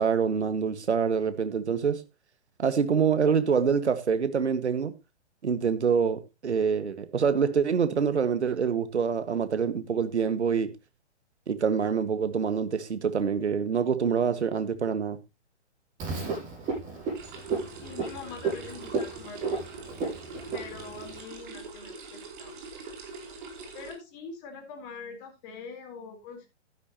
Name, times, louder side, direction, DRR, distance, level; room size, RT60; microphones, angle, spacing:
voice 1, 0.0-2.0 2.6-4.9 5.4-10.7 11.5-15.2, right 6 dB, 70° right, 1.8 m, -26 dB
Frog, 16.0-21.2, right 4 dB, 20° right, 7.9 m, -33 dB
sound 1, 17.2-23.9, right 3 dB, 45° right, 4.4 m, -43 dB
voice 2, 17.8-19.6 20.5-22.6 23.7-26.5, left 5 dB, 30° left, 3.8 m, -43 dB
12.5 x 10.5 x 2.9 m
figure-of-eight pair, 125°, 35 cm